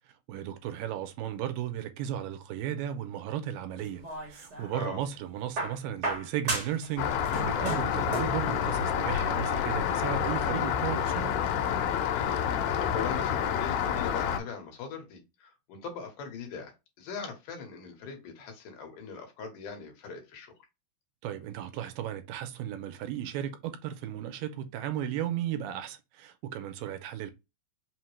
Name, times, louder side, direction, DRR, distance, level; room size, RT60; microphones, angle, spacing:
voice 1, 0.3-11.3 21.2-27.3, right 10 dB, 85° right, 2.2 m, -35 dB
sound 1, 3.8-4.8 5.6-6.9 7.2-8.4 9.5-9.6, right 2 dB, 55° right, 1.0 m, -34 dB
voice 2, 4.7-5.1 12.1-20.5, left 5 dB, 70° left, 2.5 m, -41 dB
Rain, 7.0-14.4, left 8 dB, 90° left, 2.4 m, -28 dB
5.5 x 2.1 x 3.0 m
omnidirectional pair, 4.1 m